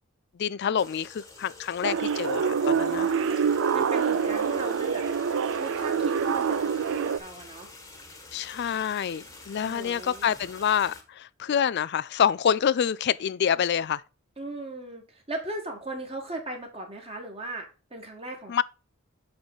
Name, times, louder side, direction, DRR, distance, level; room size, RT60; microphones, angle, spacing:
voice 1, 0.4-3.1 8.3-14.0 18.5-18.6, left 8 dB, 50° left, 0.3 m, -27 dB
sound 1, 0.8-11.0, left 2 dB, 15° left, 1.4 m, -47 dB
sound 2, 1.8-7.2, right 6 dB, 60° right, 0.4 m, -26 dB
voice 2, 2.9-3.4 3.7-5.0 5.6-7.7 9.5-10.3 14.4-17.7 17.9-18.6, right 2 dB, 25° right, 1.9 m, -38 dB
8.0 x 3.9 x 5.4 m
head